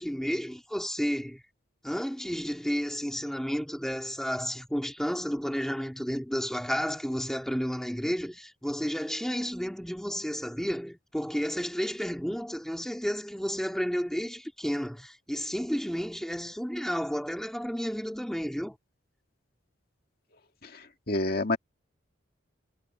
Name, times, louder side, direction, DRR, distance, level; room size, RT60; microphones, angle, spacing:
voice 1, 0.0-1.4 1.8-18.8, equal, ahead, 2.4 m, -32 dB
voice 2, 21.1-21.6, left 2 dB, 50° left, 2.2 m, -28 dB
head